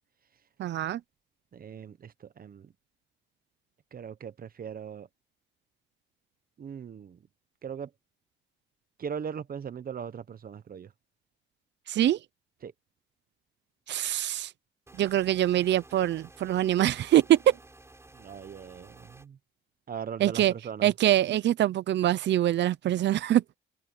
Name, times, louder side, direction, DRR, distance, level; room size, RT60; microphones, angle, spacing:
voice 1, 0.6-1.0 11.9-12.2 13.9-14.5 15.0-17.6 20.2-20.5 20.8-23.4, right 12 dB, 65° right, 0.7 m, -24 dB
voice 2, 1.5-2.7 3.9-5.1 6.6-7.2 7.6-7.9 9.0-10.9 12.6-12.7 18.1-19.4 19.9-20.9, right 7 dB, 45° right, 1.2 m, -39 dB
sound 1, 14.9-19.3, right 2 dB, 15° right, 5.9 m, -53 dB
cardioid pair, 90°, 20 cm